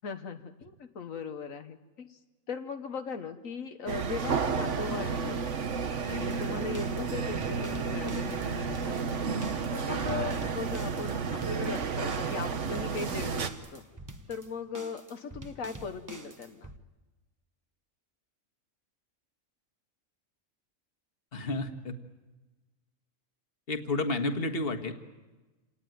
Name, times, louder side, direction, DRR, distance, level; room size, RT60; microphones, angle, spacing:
voice 1, 0.0-2.2 2.5-5.4 6.1-9.3 9.7-13.8 14.3-16.7, left 5 dB, 80° left, 7 dB, 1.6 m, -38 dB
sound 1, 3.9-13.5, right 5 dB, 65° right, 1.5 m, -32 dB
sound 2, 6.1-16.8, right 2 dB, 15° right, 1.0 m, -47 dB
voice 2, 21.3-22.0 23.7-24.9, left 2 dB, 45° left, 6 dB, 1.8 m, -31 dB
28.5 x 18.5 x 9.3 m, 1.2 s
omnidirectional pair, 1.4 m